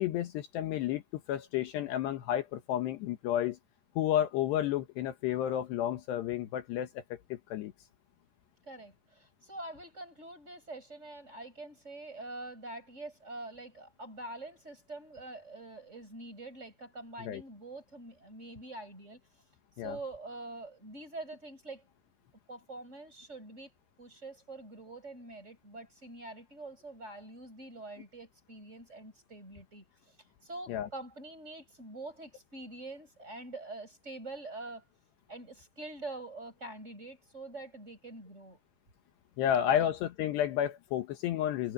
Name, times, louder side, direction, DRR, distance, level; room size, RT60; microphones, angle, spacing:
voice 1, 0.0-3.6 4.0-7.7 17.2-17.4 19.8-20.0 30.7-30.9 39.4-41.7, left 11 dB, 75° left, 3.2 m, -31 dB
voice 2, 8.6-19.2 19.8-21.8 22.5-23.7 24.0-30.2 30.4-34.8 35.3-38.6 39.7-39.9, right 2 dB, 15° right, 6.8 m, -45 dB
omnidirectional pair, 5.1 m